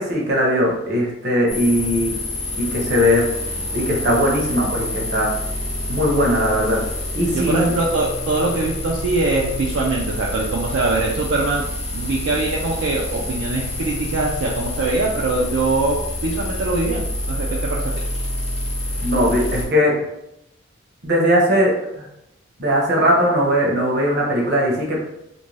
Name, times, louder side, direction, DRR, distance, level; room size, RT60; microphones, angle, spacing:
voice 1, 0.0-2.1 2.5-3.3 3.7-5.3 5.9-6.8 7.1-7.7 19.0-19.9 21.0-22.1 22.6-25.0, equal, 60° right, -2 dB, 0.8 m, -19 dB
sound 1, 1.5-19.7, left 1 dB, 35° left, 0.6 m, -27 dB
voice 2, 7.3-11.7 11.9-17.9, right 3 dB, 80° right, -3 dB, 0.4 m, -22 dB
2.6 x 2.2 x 3.1 m, 0.82 s
head